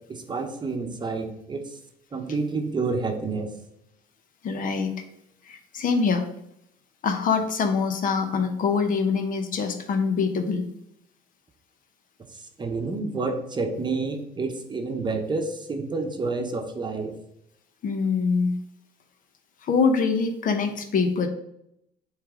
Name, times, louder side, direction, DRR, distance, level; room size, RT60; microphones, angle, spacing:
voice 1, 0.1-1.6 2.1-3.5 12.6-17.1, right 3 dB, 25° right, 4 dB, 0.9 m, -29 dB
voice 2, 4.4-4.9 5.5-6.3 7.0-10.6 17.8-18.6 19.6-21.3, left 5 dB, 55° left, 7 dB, 0.9 m, -24 dB
8.3 x 3.3 x 3.7 m, 0.77 s
cardioid pair, 110°, 17 cm